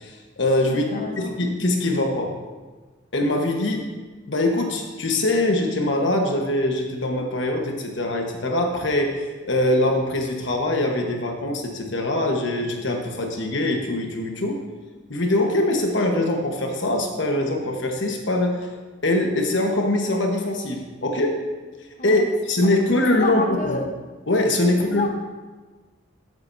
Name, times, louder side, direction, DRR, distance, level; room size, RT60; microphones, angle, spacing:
voice 1, 0.0-2.4 3.1-3.9 4.3-14.6 15.1-18.7 19.0-21.4 22.0-23.8 24.3-25.1, left 1 dB, 65° left, 2 dB, 1.3 m, -23 dB
voice 2, 0.6-1.3 22.0-22.3 22.6-23.9 24.7-25.1, left 2 dB, 40° left, 2 dB, 1.1 m, -30 dB
13.0 x 7.8 x 2.7 m, 1.3 s
head